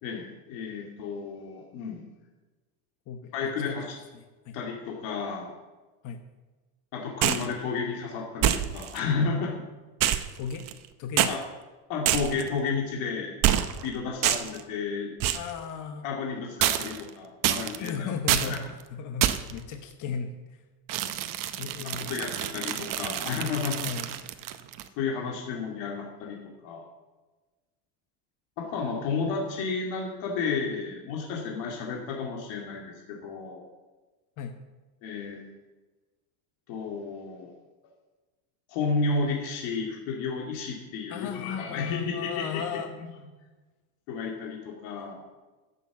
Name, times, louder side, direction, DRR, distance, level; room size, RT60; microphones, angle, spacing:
voice 1, 0.0-2.0 3.3-3.9 4.5-5.5 6.9-9.6 11.3-11.4 11.9-13.3 13.8-15.1 16.0-18.1 18.4-18.6 21.8-23.8 25.0-26.9 28.6-33.7 35.0-35.4 36.7-37.5 38.7-42.6 43.0-43.1 44.1-45.2, left 4 dB, 65° left, -1 dB, 2.5 m, -32 dB
voice 2, 3.1-3.8 4.1-4.6 6.0-6.2 10.0-10.7 11.0-11.4 15.3-16.1 17.8-20.6 21.6-22.3 23.8-24.1 34.4-34.5 41.1-42.9, left 6 dB, 40° left, 6 dB, 1.0 m, -36 dB
sound 1, 7.2-7.5 8.4-9.0 10.0-10.9 11.2-11.3 12.1-12.5 13.4-13.9 14.2-14.6 15.2-15.5 16.6-17.1 17.4-17.9 18.3-18.6 19.2-19.6 20.9-24.9, right 11 dB, 40° right, 0.9 m, -27 dB
11.5 x 8.3 x 7.2 m, 1.2 s
cardioid pair, 140°, 50 cm